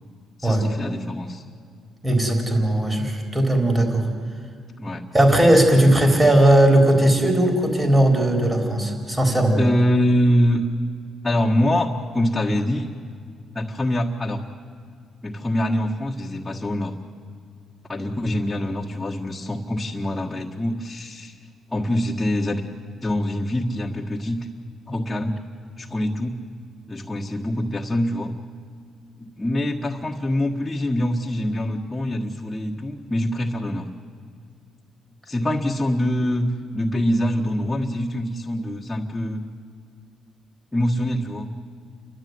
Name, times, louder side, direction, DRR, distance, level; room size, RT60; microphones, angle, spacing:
voice 1, 0.4-1.4 4.8-5.0 9.6-10.6 11.2-12.9 13.5-14.4 15.2-16.9 17.9-21.3 21.7-22.6 23.0-24.4 24.9-25.4 25.8-26.3 26.9-28.3 29.2-33.8 35.2-36.5 36.7-39.4 40.7-41.5, left 1 dB, 15° left, -3 dB, 1.6 m, -24 dB
voice 2, 2.0-4.1 5.1-9.6, right 1 dB, 15° right, 3 dB, 4.2 m, -17 dB
30.0 x 13.0 x 9.6 m, 2.2 s
cardioid pair, 90°, 0 cm